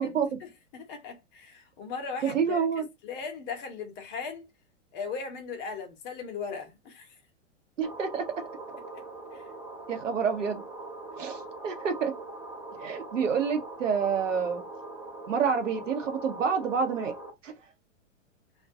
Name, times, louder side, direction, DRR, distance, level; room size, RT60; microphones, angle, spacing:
voice 1, 0.0-2.7 3.0-4.5 4.9-7.1 9.3-9.4, left 5 dB, 30° left, 0.7 m, -38 dB
voice 2, 2.2-2.8 7.8-8.2 9.9-10.6 11.2-12.1 12.8-14.6 15.3-17.1 17.4-17.5, right 6 dB, 75° right, 0.8 m, -28 dB
sound 1, 7.8-17.3, right 2 dB, 10° right, 1.0 m, -42 dB
2.4 x 2.2 x 2.5 m
figure-of-eight pair, 105°, 38 cm